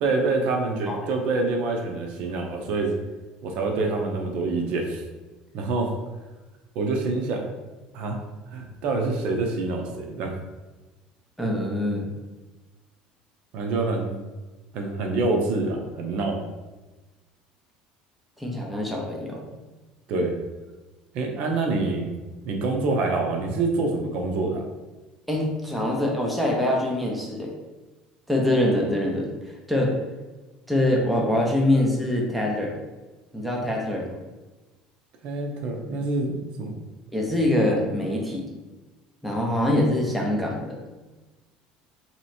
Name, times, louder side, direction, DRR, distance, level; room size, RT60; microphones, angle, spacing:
voice 1, 0.0-3.0 3.4-5.0 5.5-6.0 6.7-7.5 7.9-8.2 8.5-10.3 13.5-14.2 14.7-16.4 20.1-20.4 21.1-22.2 22.4-24.6 35.2-36.8, right 3 dB, 55° right, 3 dB, 0.6 m, -26 dB
voice 2, 11.4-12.1 18.4-19.4 25.3-27.5 28.3-29.3 29.7-29.9 30.7-32.8 33.3-34.2 37.1-38.4 39.2-40.7, left 1 dB, ahead, -2 dB, 0.6 m, -24 dB
3.1 x 3.0 x 4.2 m, 1.2 s
cardioid pair, 155°, 2 cm